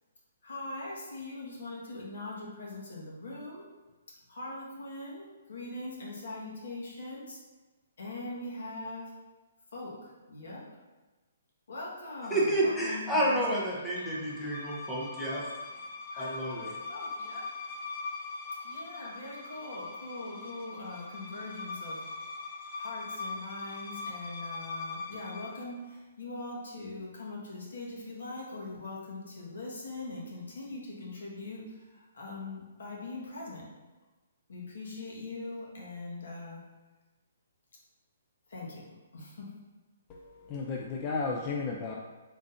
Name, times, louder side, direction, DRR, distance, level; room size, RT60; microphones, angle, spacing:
voice 1, 0.4-3.7 4.1-7.4 8.0-9.1 9.7-10.6 11.7-13.5 13.9-14.3 16.1-17.5 18.6-22.0 22.8-33.7 34.5-36.6 38.5-38.9 39.1-39.5, left 2 dB, 75° left, -4 dB, 1.3 m, -41 dB
voice 2, 12.3-15.5 16.2-16.7, right 1 dB, 5° left, -6 dB, 0.7 m, -30 dB
sound 1, 12.9-25.6, left 3 dB, 45° left, 0.7 m, -41 dB
voice 3, 40.1-42.0, left 4 dB, 25° left, -1 dB, 0.3 m, -34 dB
4.1 x 3.7 x 2.6 m, 1.2 s
hypercardioid pair, 160°, 0 cm